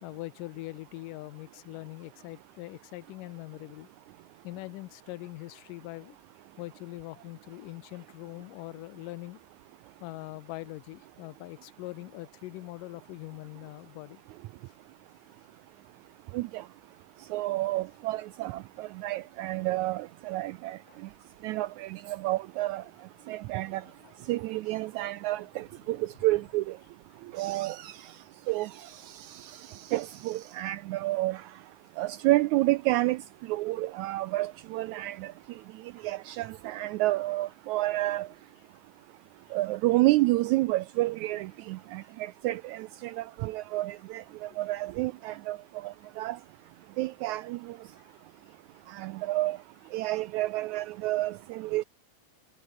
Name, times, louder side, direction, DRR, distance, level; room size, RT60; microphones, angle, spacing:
voice 1, 0.0-3.9 4.4-6.2 6.6-9.4 10.0-14.2 14.7-14.8 20.9-21.2 23.4-24.1 44.4-44.6 48.0-48.2, left 20 dB, 80° left, 2.2 m, -42 dB
voice 2, 16.3-16.6 17.3-20.8 21.4-22.8 23.3-23.8 24.3-26.8 27.3-28.0 28.5-31.4 32.0-33.2 33.5-35.3 36.0-38.3 39.5-45.6 45.8-46.4 47.0-47.6 48.9-49.6 49.9-51.8, right 18 dB, 80° right, 1.7 m, -30 dB
omnidirectional pair, 3.8 m